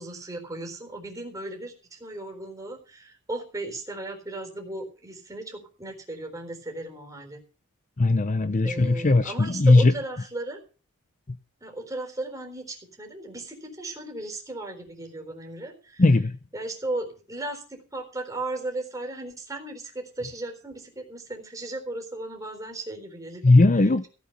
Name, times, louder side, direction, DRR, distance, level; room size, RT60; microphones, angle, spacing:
voice 1, 0.0-7.4 8.6-10.6 11.6-16.0 16.5-23.4 23.8-24.1, right 2 dB, 15° right, 3.9 m, -36 dB
voice 2, 8.0-9.9 16.0-16.3 23.4-24.1, left 2 dB, 35° left, 0.6 m, -18 dB
16.0 x 8.3 x 6.6 m
head